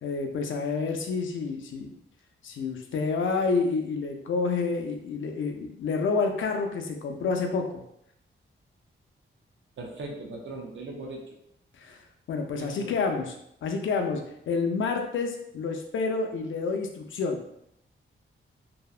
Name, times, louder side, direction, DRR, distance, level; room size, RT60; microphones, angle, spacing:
voice 1, 0.0-1.9 2.4-7.8 11.8-12.0 12.3-13.3 13.6-14.2 14.5-17.4, left 4 dB, 65° left, 3 dB, 0.4 m, -28 dB
voice 2, 9.8-11.4 12.6-13.0, right 2 dB, 65° right, 1 dB, 0.5 m, -39 dB
2.7 x 2.1 x 2.3 m, 0.74 s
wide cardioid pair, 115°, 21 cm